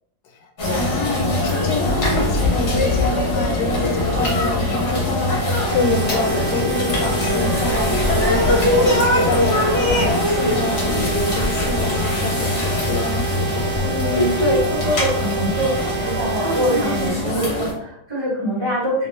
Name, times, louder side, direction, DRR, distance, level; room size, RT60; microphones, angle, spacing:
voice 1, 0.2-13.9, left 2 dB, 80° left, 3 dB, 1.1 m, -27 dB
sound 1, 0.6-17.7, left 1 dB, 50° left, 1.2 m, -21 dB
sound 2, 5.7-17.1, right 7 dB, 75° right, 1.1 m, -29 dB
voice 2, 13.8-19.1, equal, 20° right, -8 dB, 1.1 m, -24 dB
3.0 x 2.9 x 3.1 m, 0.71 s
omnidirectional pair, 1.8 m